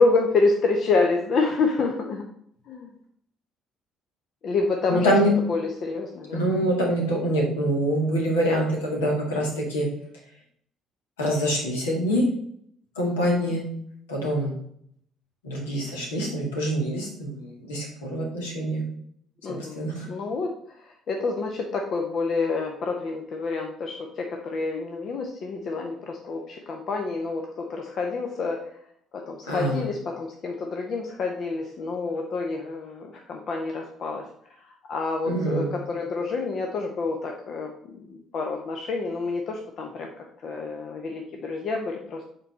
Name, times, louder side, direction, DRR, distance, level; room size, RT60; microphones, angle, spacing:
voice 1, 0.0-2.2 2.7-2.9 4.4-5.1 5.5-6.4 13.2-13.5 19.4-20.5 21.1-28.6 29.3-34.2 34.9-37.7 38.1-40.1 40.4-42.2, left 3 dB, 45° left, 2 dB, 0.9 m, -27 dB
voice 2, 4.9-5.3 6.3-9.9 11.2-12.2 13.0-13.6 14.1-14.6 15.4-18.8 19.5-20.1 29.5-29.9 35.3-35.7, right 1 dB, 70° left, -1 dB, 2.0 m, -25 dB
7.7 x 4.7 x 4.2 m, 0.67 s
figure-of-eight pair, 50°, 0 cm